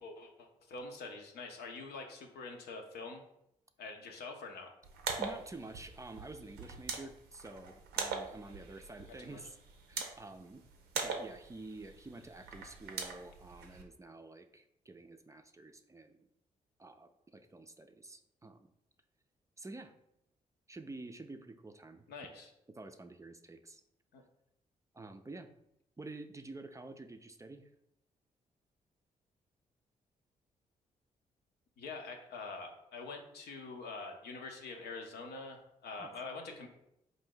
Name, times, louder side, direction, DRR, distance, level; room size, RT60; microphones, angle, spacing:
voice 1, 0.0-3.2 3.8-4.7 9.2-9.4 22.1-22.5 24.1-24.2 31.8-36.7, left 3 dB, 75° left, 3 dB, 0.7 m, -45 dB
sound 1, 4.8-13.8, right 5 dB, 90° right, 0.5 m, -42 dB
voice 2, 5.2-9.6 9.9-10.6 10.9-16.3 16.8-18.7 19.6-19.9 20.7-22.0 22.7-23.8 24.9-25.5 26.0-27.7 36.0-36.1, right 2 dB, 20° right, 7 dB, 0.4 m, -49 dB
4.0 x 2.6 x 3.8 m, 0.80 s
supercardioid pair, 50°, 17 cm